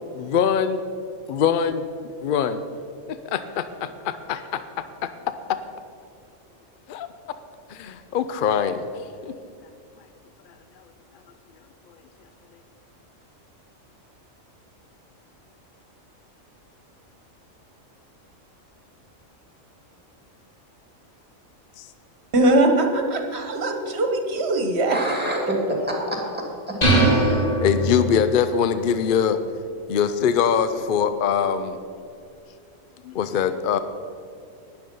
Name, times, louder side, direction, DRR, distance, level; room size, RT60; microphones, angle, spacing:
voice 1, 0.1-0.8 1.3-1.8 2.2-2.6 3.1-5.1 6.9-7.1 7.7-8.9 9.2-9.3 21.8-21.9 27.6-29.4 29.9-31.8 33.0-33.8, left 7 dB, 65° left, 11 dB, 0.5 m, -23 dB
voice 2, 22.3-25.0, right 2 dB, 55° right, 5 dB, 1.5 m, -21 dB
voice 3, 24.9-26.5 27.0-27.5, equal, 5° right, -1 dB, 2.6 m, -26 dB
sound 1, 26.8-28.4, right 2 dB, 30° left, 2.0 m, -20 dB
12.0 x 10.0 x 5.4 m, 2.4 s
omnidirectional pair, 1.4 m